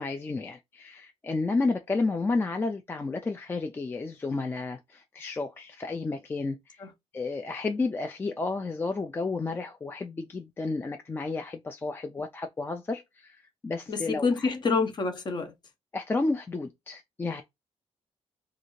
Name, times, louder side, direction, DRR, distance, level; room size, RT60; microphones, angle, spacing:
voice 1, 0.0-6.8 7.1-13.4 13.6-14.5 15.9-17.4, left 3 dB, 20° left, 0.3 m, -31 dB
voice 2, 13.9-15.5, left 4 dB, 40° left, 0.7 m, -27 dB
2.6 x 2.4 x 3.0 m
cardioid pair, 130°, 11 cm